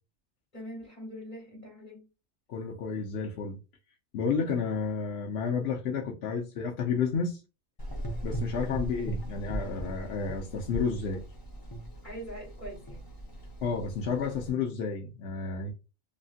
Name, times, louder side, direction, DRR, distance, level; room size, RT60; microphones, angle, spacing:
voice 1, 0.5-2.1 12.0-13.1, equal, 45° left, 1.3 m, -43 dB
voice 2, 2.5-3.6 4.1-7.4 8.2-11.2 13.6-15.7, left 5 dB, 70° left, 0.8 m, -31 dB
Gurgling / Engine, 7.8-14.5, right 1 dB, 25° left, 0.5 m, -38 dB
3.1 x 2.5 x 2.4 m
omnidirectional pair, 1.2 m